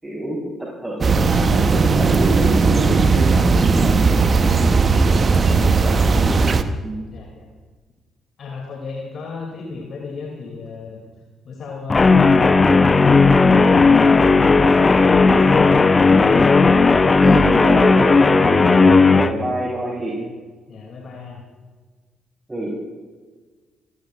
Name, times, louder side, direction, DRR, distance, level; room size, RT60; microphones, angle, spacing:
voice 1, 0.0-4.5 5.0-6.5 6.8-7.0 17.2-20.1 22.5-22.7, right 1 dB, 15° right, -4 dB, 4.8 m, -27 dB
sound 1, 1.0-6.6, right 4 dB, 40° right, 0.9 m, -16 dB
voice 2, 7.1-7.5 8.4-11.0 11.4-16.2 19.8-20.3 20.7-21.4, left 4 dB, 50° left, 0 dB, 2.8 m, -34 dB
Guitar, 11.9-19.3, left 4 dB, 30° left, 0.8 m, -14 dB
27.5 x 17.0 x 2.5 m, 1.4 s
figure-of-eight pair, 40°, 0 cm